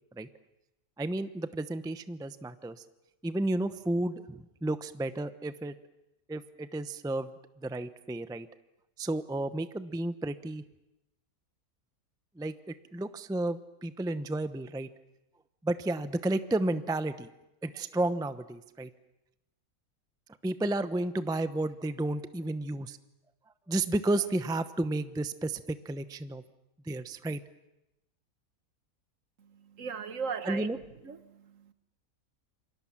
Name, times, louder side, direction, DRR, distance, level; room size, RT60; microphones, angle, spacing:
voice 1, 1.0-2.8 3.2-5.7 6.3-8.5 9.0-10.6 12.4-12.5 12.9-14.9 15.6-17.3 17.6-18.9 20.4-23.0 23.7-26.4 26.8-27.4 30.4-30.8, right 2 dB, 5° right, 12 dB, 0.6 m, -32 dB
voice 2, 29.4-30.7 31.0-31.7, right 6 dB, 60° right, 11 dB, 1.5 m, -38 dB
28.5 x 23.5 x 7.4 m, 0.92 s
omnidirectional pair, 1.5 m